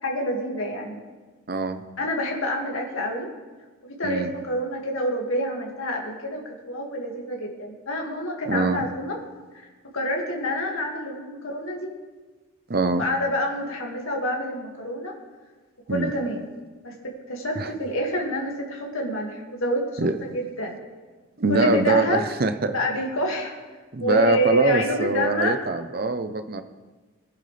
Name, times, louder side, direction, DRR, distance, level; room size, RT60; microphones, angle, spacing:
voice 1, 0.0-1.0 2.0-3.3 3.8-9.2 9.9-11.9 12.9-15.1 15.9-16.5 16.8-19.8 20.2-20.8 21.5-22.2 22.7-23.5 24.0-25.6, equal, 70° left, 0 dB, 2.2 m, -27 dB
voice 2, 1.5-1.8 4.0-4.3 8.5-8.8 12.7-13.0 15.9-16.1 17.6-17.7 20.0-20.2 21.4-22.7 23.9-26.6, right 3 dB, 45° right, 9 dB, 0.6 m, -23 dB
20.5 x 10.5 x 3.4 m, 1.3 s
head